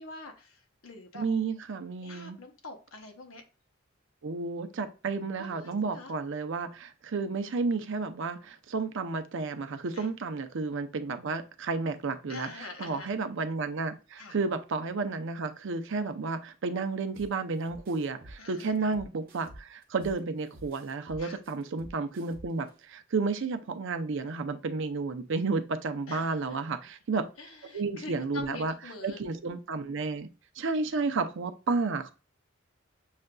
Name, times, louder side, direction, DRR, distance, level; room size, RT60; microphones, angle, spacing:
voice 1, 0.0-1.2 2.0-3.4 5.4-6.1 9.9-10.1 12.3-13.1 14.2-14.4 18.4-18.7 21.2-21.4 26.1-26.6 27.4-29.2, left 3 dB, 90° left, 4 dB, 1.0 m, -45 dB
voice 2, 1.1-2.4 4.2-27.3 27.7-28.7 29.0-30.3 30.6-32.1, right 4 dB, 65° right, 8 dB, 0.5 m, -32 dB
sound 1, 17.1-17.3 17.7-20.2 20.5-22.7, right 1 dB, 45° right, 0.9 m, -48 dB
6.4 x 2.5 x 2.2 m, 0.33 s
head